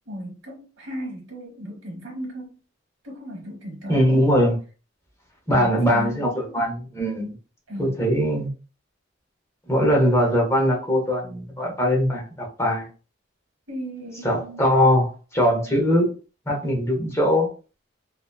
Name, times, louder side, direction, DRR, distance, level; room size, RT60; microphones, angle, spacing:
voice 1, 0.1-2.6 3.0-4.1 5.5-6.6 7.7-7.9 13.7-14.7 15.9-16.0, equal, 75° right, 1.0 m, -36 dB
voice 2, 3.9-4.6 5.5-7.3 7.8-8.5 9.7-12.9 14.2-16.1 16.5-17.5, equal, 15° left, 0.7 m, -21 dB
2.7 x 2.1 x 2.2 m
head